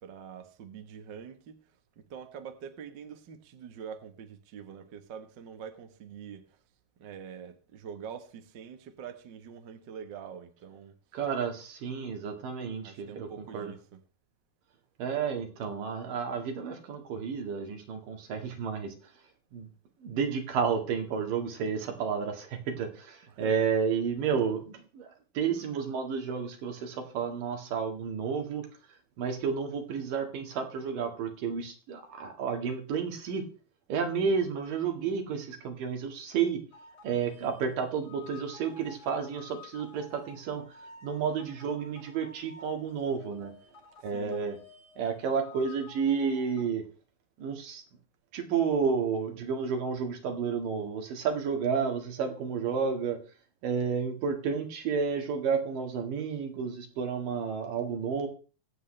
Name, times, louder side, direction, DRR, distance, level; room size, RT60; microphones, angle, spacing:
voice 1, 0.0-6.6 7.0-11.0 12.8-14.0 23.3-23.7 44.1-44.5, right 7 dB, 55° right, 1.3 m, -45 dB
voice 2, 11.1-13.7 15.0-18.9 19.5-19.7 20.0-25.1 25.4-28.7 29.2-33.4 33.9-36.6 37.0-43.5 44.0-44.6 45.0-46.8 47.4-47.8 48.3-53.2 53.6-58.3, right 6 dB, 70° right, 3.5 m, -31 dB
sound 1, 36.7-46.7, left 3 dB, 35° left, 2.8 m, -52 dB
24.5 x 8.2 x 3.3 m
omnidirectional pair, 4.0 m